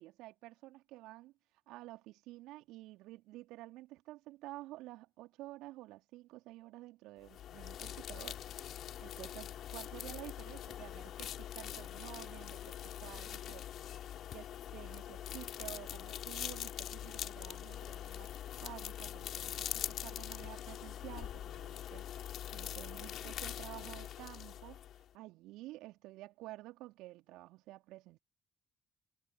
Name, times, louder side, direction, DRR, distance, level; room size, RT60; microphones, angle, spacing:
voice 1, 0.0-1.3 1.7-8.4 9.0-13.7 14.3-18.3 18.6-22.1 22.5-24.8 25.1-28.2, right 18 dB, 70° right, 2.6 m, -51 dB
sound 1, 7.2-25.1, left 11 dB, 60° left, 3.9 m, -43 dB
figure-of-eight pair, 45°, 0 cm